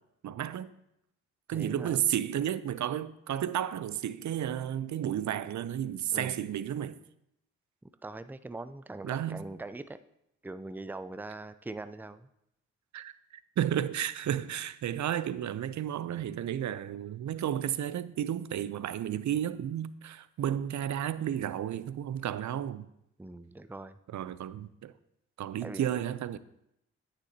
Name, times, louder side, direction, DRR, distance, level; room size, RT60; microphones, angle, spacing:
voice 1, 0.2-0.7 1.5-7.0 9.0-9.4 12.9-13.1 13.6-22.9 24.1-24.9 25.4-26.4, right 10 dB, 55° right, 0.6 m, -32 dB
voice 2, 1.5-2.0 6.1-6.4 8.0-10.0 10.4-12.3 23.2-24.0 25.6-25.9, right 2 dB, 5° right, 0.5 m, -42 dB
10.0 x 9.1 x 2.8 m
supercardioid pair, 45°, 35 cm